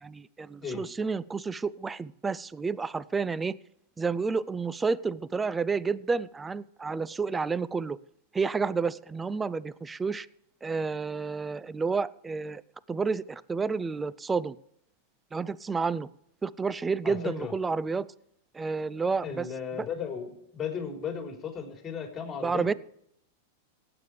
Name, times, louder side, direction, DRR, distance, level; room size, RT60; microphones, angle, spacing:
voice 1, 0.0-3.5 4.0-8.0 8.3-10.3 10.6-12.6 12.9-14.6 15.3-16.1 16.4-18.1 18.5-19.5 19.8-19.9 22.4-22.7, right 4 dB, 15° right, 20 dB, 0.4 m, -30 dB
voice 2, 17.0-17.5 19.2-20.3 20.5-22.8, left 7 dB, 25° left, 2 dB, 3.8 m, -35 dB
18.5 x 8.8 x 3.3 m, 0.74 s
hypercardioid pair, 100°, 0 cm